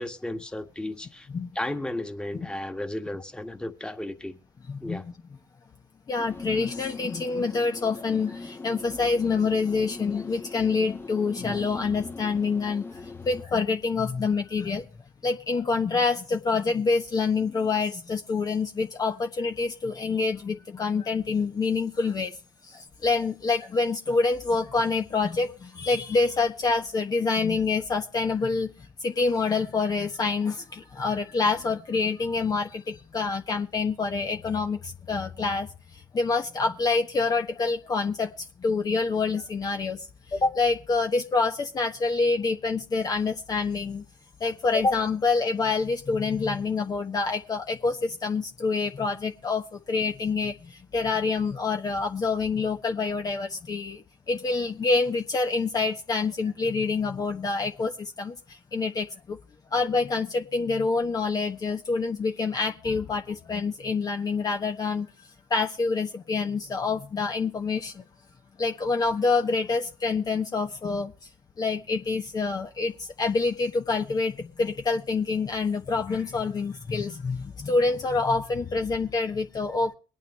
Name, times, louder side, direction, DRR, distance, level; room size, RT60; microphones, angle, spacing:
voice 1, 0.0-1.3 1.6-4.4 4.8-5.0, left 1 dB, 10° left, 6 dB, 1.8 m, -34 dB
voice 2, 4.7-5.1 6.1-14.9 15.2-22.4 22.6-28.7 29.0-35.7 36.1-38.3 38.6-44.0 44.4-59.4 59.7-65.1 65.5-68.0 68.6-71.1 71.6-79.9, left 4 dB, 40° left, 4 dB, 1.2 m, -27 dB
sound 1, 6.2-13.4, left 3 dB, 25° left, 1.3 m, -41 dB
23.0 x 9.2 x 3.2 m, 0.36 s
hypercardioid pair, 60°, 9 cm